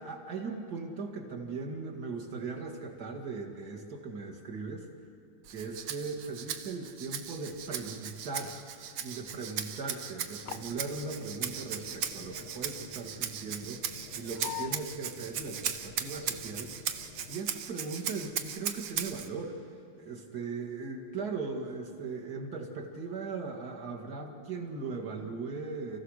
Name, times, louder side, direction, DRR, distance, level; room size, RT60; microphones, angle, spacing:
voice 1, 0.0-4.9 5.5-8.6 9.0-16.7 17.3-26.0, right 4 dB, 50° right, 1 dB, 2.5 m, -39 dB
Rattle (instrument), 5.4-19.3, right 8 dB, 65° right, 1.4 m, -38 dB
sound 1, 10.5-17.4, left 12 dB, 85° left, 1.5 m, -47 dB
28.5 x 15.0 x 6.5 m, 2.5 s
omnidirectional pair, 2.3 m